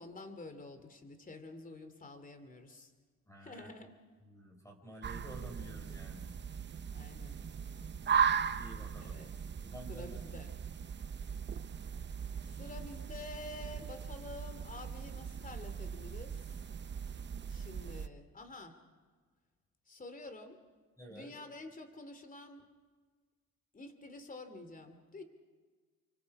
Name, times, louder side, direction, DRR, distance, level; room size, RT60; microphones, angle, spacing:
voice 1, 0.0-2.9 3.4-3.9 6.9-7.4 9.0-9.3 9.9-10.5 12.5-16.6 17.5-18.8 19.9-20.6 21.1-22.6 23.7-25.2, left 2 dB, 25° left, 8 dB, 2.9 m, -49 dB
voice 2, 3.3-3.7 4.2-6.3 8.0-9.2 9.6-10.3 21.0-21.3, right 1 dB, 10° left, 2 dB, 5.2 m, -50 dB
sound 1, 5.0-18.1, right 7 dB, 35° right, 0.8 m, -38 dB
29.5 x 25.0 x 4.9 m, 1.5 s
cardioid pair, 90°, 30 cm